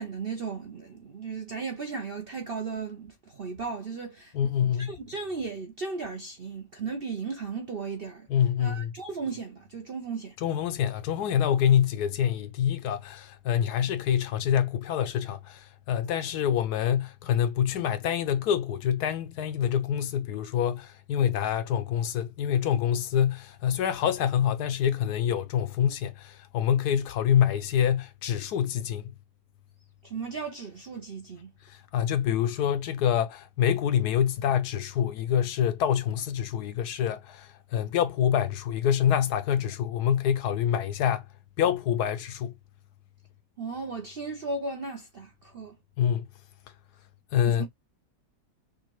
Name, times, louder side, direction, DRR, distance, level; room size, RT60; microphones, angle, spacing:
voice 1, 0.0-8.3 8.6-10.4 30.0-31.5 43.6-45.8 47.4-47.6, right 4 dB, 55° right, 0.6 m, -36 dB
voice 2, 4.3-4.9 8.3-8.9 10.4-29.1 31.7-41.2 41.6-42.5 46.0-46.3 47.3-47.7, left 9 dB, 70° left, 1.1 m, -26 dB
5.2 x 2.5 x 3.0 m
omnidirectional pair, 1.9 m